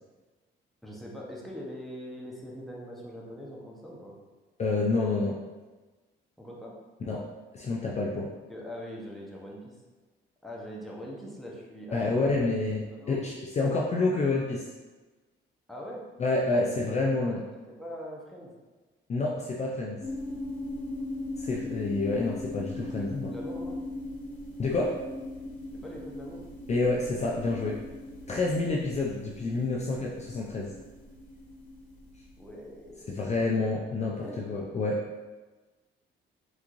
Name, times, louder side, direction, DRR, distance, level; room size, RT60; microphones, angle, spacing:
voice 1, 0.8-4.2 6.4-6.7 8.5-9.8 10.4-12.5 12.9-13.2 15.7-16.0 16.5-16.7 17.3-17.4 17.7-18.5 22.7-23.8 25.8-26.5 32.4-33.2 34.0-34.4, equal, ahead, -4 dB, 0.8 m, -42 dB
voice 2, 4.6-5.4 7.0-7.3 7.5-8.3 11.9-14.6 16.2-17.4 19.1-20.0 21.4-23.3 24.6-25.0 26.7-27.8 28.3-30.7 33.1-35.0, left 3 dB, 35° left, -2 dB, 0.4 m, -28 dB
sound 1, 20.0-33.4, left 1 dB, 70° left, 1.1 m, -40 dB
3.4 x 3.1 x 2.5 m, 1.2 s
cardioid pair, 90°, 20 cm